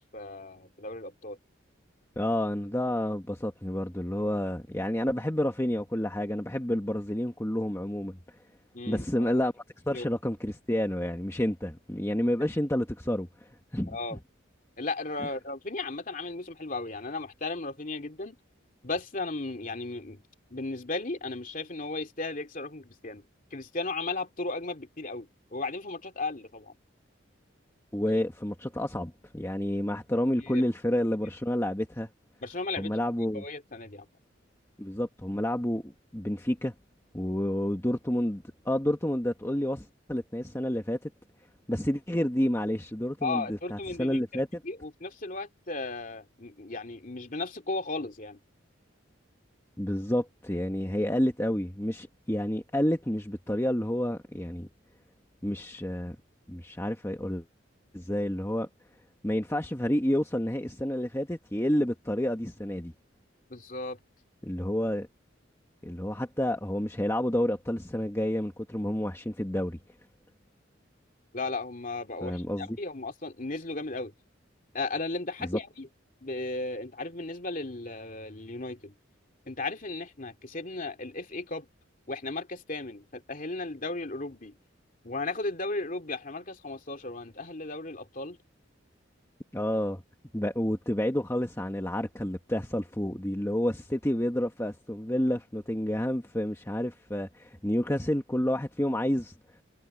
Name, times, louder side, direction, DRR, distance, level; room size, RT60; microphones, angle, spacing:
voice 1, 0.0-1.4 8.7-9.4 9.9-10.0 13.9-14.2 14.8-18.4 18.8-20.2 20.5-23.2 23.5-26.7 30.4-30.6 32.4-32.9 33.3-34.1 43.2-48.4 63.5-64.0 71.3-74.1 74.7-75.9 76.2-78.9 79.5-81.7 82.1-84.5 85.0-88.4, left 3 dB, 45° left, 2.8 m, -35 dB
voice 2, 2.2-8.2 8.9-14.0 27.9-32.1 32.8-33.4 34.8-36.7 37.1-41.1 41.7-44.6 49.8-54.7 55.4-56.1 56.5-57.4 57.9-58.7 59.2-62.9 64.4-65.1 65.8-69.8 72.2-72.7 75.4-75.6 89.5-90.0 90.3-99.3, left 1 dB, 15° left, 1.3 m, -29 dB
head